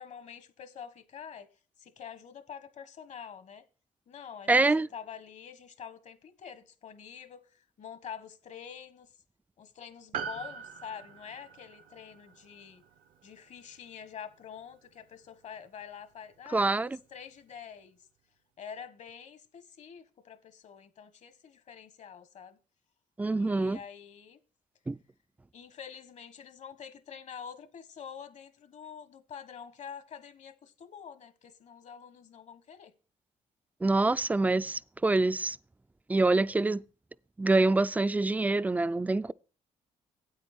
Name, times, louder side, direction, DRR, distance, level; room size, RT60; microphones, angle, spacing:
voice 1, 0.0-1.5 1.8-3.6 4.1-9.1 9.6-12.8 13.2-18.0 18.6-22.6 23.3-24.4 25.5-32.9, left 7 dB, 60° left, 1.4 m, -46 dB
voice 2, 4.5-4.9 16.5-17.0 23.2-23.8 24.9-25.0 33.8-35.6 36.1-36.8 37.4-39.3, right 2 dB, 10° right, 0.4 m, -25 dB
Piano, 10.1-14.7 15.0-15.1, right 6 dB, 80° right, 0.9 m, -43 dB
8.8 x 8.7 x 4.3 m
cardioid pair, 110°, 14 cm